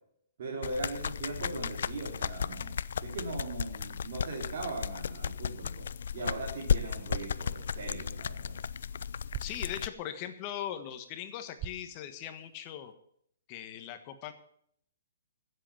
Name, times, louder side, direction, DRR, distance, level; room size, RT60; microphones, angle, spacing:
voice 1, 0.4-2.7 3.0-5.9 6.1-8.6, right 2 dB, 55° right, -3 dB, 3.3 m, -39 dB
sound 1, 0.6-9.9, left 7 dB, 70° left, 0.5 m, -35 dB
sound 2, 6.9-12.9, right 11 dB, 20° right, 0.6 m, -48 dB
voice 2, 9.4-12.9 13.5-14.3, left 10 dB, 30° left, 9 dB, 1.4 m, -40 dB
15.0 x 8.0 x 7.3 m, 0.68 s
hypercardioid pair, 165°, 0 cm